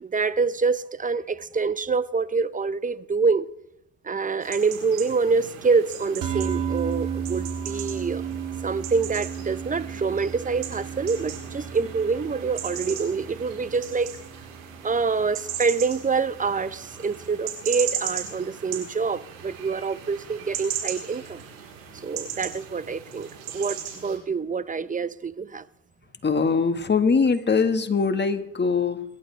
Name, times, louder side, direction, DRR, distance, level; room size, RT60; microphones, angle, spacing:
voice 1, 0.0-3.5 4.0-8.2 8.6-14.1 14.8-21.4 22.0-23.3 23.5-25.6, right 4 dB, 20° right, 0.7 m, -26 dB
sound 1, 4.4-24.2, right 9 dB, 90° right, 3.9 m, -37 dB
sound 2, 6.2-16.7, right 7 dB, 55° right, 2.4 m, -34 dB
voice 2, 26.2-29.0, left 5 dB, 25° left, 1.7 m, -22 dB
24.0 x 12.0 x 3.4 m
hypercardioid pair, 70°, 39 cm